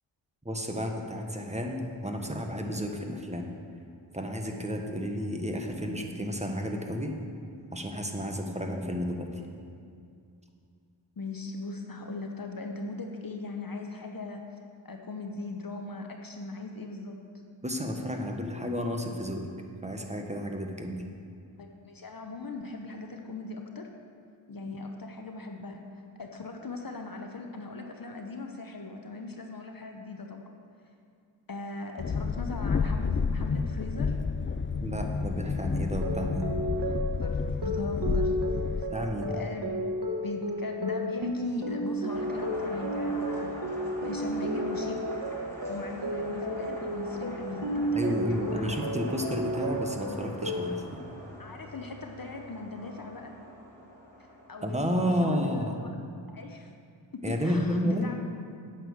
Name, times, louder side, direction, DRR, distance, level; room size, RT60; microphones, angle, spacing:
voice 1, 0.4-3.5 4.1-7.1 7.7-9.4 17.6-19.5 19.8-21.0 34.8-36.5 38.9-39.3 47.9-50.8 54.6-55.8 57.2-58.1, equal, 15° right, 3 dB, 1.2 m, -31 dB
voice 2, 11.2-14.4 14.8-17.2 21.6-23.9 24.5-25.8 26.2-30.4 31.5-34.2 36.8-38.4 38.8-38.9 39.3-39.8 40.2-45.2 45.7-48.8 51.4-53.3 54.2-56.0 56.3-56.7 57.1-58.2, left 3 dB, 45° left, 3 dB, 0.9 m, -39 dB
Train, 32.0-38.8, left 5 dB, 30° left, 0.3 m, -30 dB
sound 1, 35.9-50.7, equal, 60° right, 1.3 m, -33 dB
sound 2, 42.1-54.8, equal, 5° left, 2.7 m, -43 dB
8.8 x 8.3 x 6.5 m, 2.4 s
wide cardioid pair, 65°, 47 cm